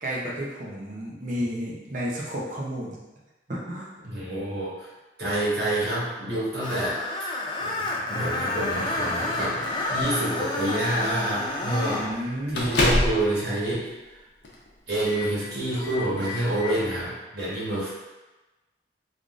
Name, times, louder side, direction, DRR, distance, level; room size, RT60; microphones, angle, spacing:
voice 1, 0.0-3.0 3.5-3.9 11.9-12.6, equal, 45° right, -4 dB, 0.6 m, -32 dB
voice 2, 4.0-4.9 5.2-7.0 7.6-12.0 12.5-13.9 14.9-17.9, right 1 dB, 65° right, -8 dB, 1.3 m, -28 dB
Screech, 6.6-12.1, left 2 dB, 25° left, 0.3 m, -29 dB
Microwave oven, 8.6-10.0 10.9-11.1 11.5-11.6 12.0-13.3 13.7-13.8 14.4-14.7 15.0-15.3 15.6-16.7, left 1 dB, 80° left, 0.6 m, -29 dB
3.5 x 2.4 x 2.4 m, 1.1 s
head